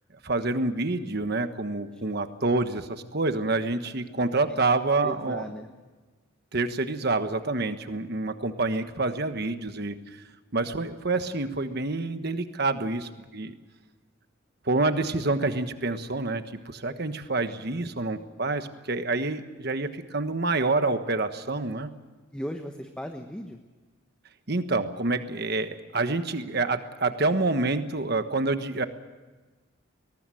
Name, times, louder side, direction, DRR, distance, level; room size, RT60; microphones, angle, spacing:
voice 1, 0.2-5.5 6.5-10.0 10.5-13.5 14.6-21.9 24.5-28.9, right 3 dB, 50° right, 9 dB, 1.3 m, -27 dB
voice 2, 5.0-5.7 22.3-23.6, equal, 5° left, 4 dB, 1.1 m, -37 dB
23.0 x 19.5 x 7.6 m, 1.3 s
head